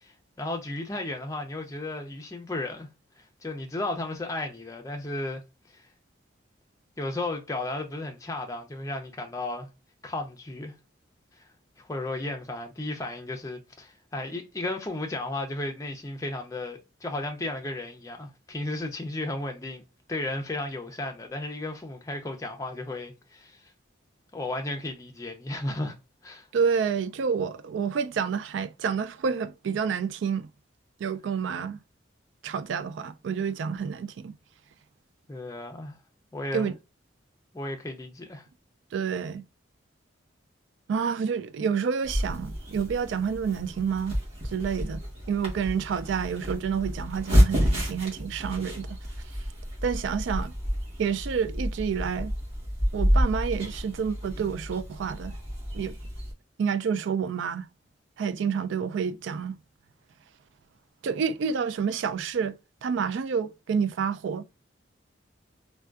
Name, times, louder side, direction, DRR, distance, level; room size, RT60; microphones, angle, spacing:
voice 1, 0.0-2.9 3.2-5.4 5.7-5.8 7.0-9.7 10.0-10.7 11.8-19.8 20.1-23.7 24.3-26.0 26.2-26.5 35.3-36.0 36.3-36.7 37.5-38.4, left 2 dB, 15° left, 0.4 m, -34 dB
voice 2, 26.5-30.5 31.0-31.8 32.4-34.3 36.5-36.7 38.9-39.4 40.9-44.2 44.4-49.0 49.8-50.5 51.0-52.3 52.9-55.3 55.7-56.0 56.6-57.7 58.2-59.6 61.0-62.5 62.8-64.4, right 6 dB, 75° right, 0.3 m, -29 dB
sound 1, 42.0-56.3, equal, 30° right, 1.2 m, -29 dB
3.5 x 2.2 x 2.4 m
head